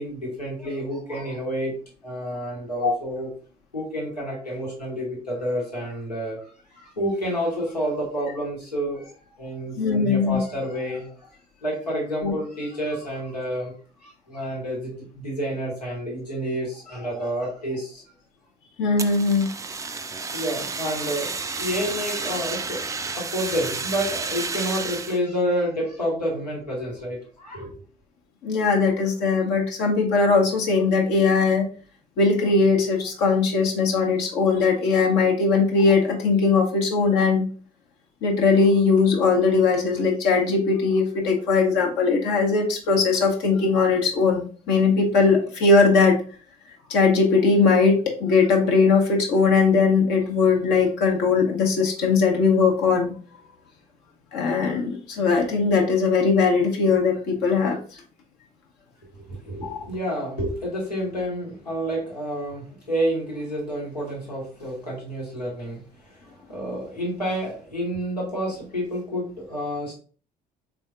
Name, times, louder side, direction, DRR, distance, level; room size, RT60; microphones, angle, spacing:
voice 1, 0.0-1.7 2.0-3.3 3.7-11.2 11.6-13.7 14.0-18.0 20.3-27.7 59.1-69.9, equal, 85° left, -3 dB, 1.2 m, -29 dB
voice 2, 9.8-10.4 12.2-12.3 18.8-19.5 28.4-31.7 32.2-37.5 38.2-46.2 46.9-53.1 54.3-58.0 59.6-59.8, left 4 dB, 55° left, 0 dB, 0.9 m, -20 dB
Fire, 19.0-25.2, right 4 dB, 15° right, 0.4 m, -31 dB
4.3 x 3.5 x 2.4 m, 0.40 s
figure-of-eight pair, 50°, 20 cm